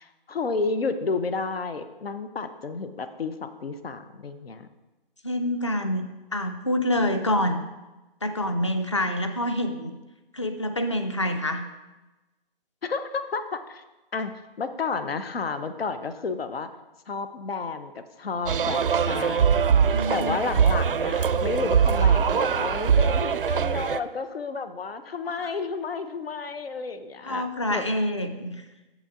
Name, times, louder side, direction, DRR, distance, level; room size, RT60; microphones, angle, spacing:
voice 1, 0.0-4.7 12.8-13.8 14.1-14.3 14.6-16.7 17.1-19.6 19.9-27.8, left 4 dB, 80° left, 10 dB, 0.8 m, -31 dB
voice 2, 5.2-6.1 6.3-7.6 8.2-9.9 10.3-11.6 19.9-20.4 25.3-25.5 27.2-28.6, left 1 dB, 30° left, 7 dB, 0.5 m, -26 dB
sound 1, 18.5-24.0, right 7 dB, 65° right, 0.4 m, -22 dB
8.3 x 7.4 x 3.7 m, 1.1 s
hypercardioid pair, 175°, 29 cm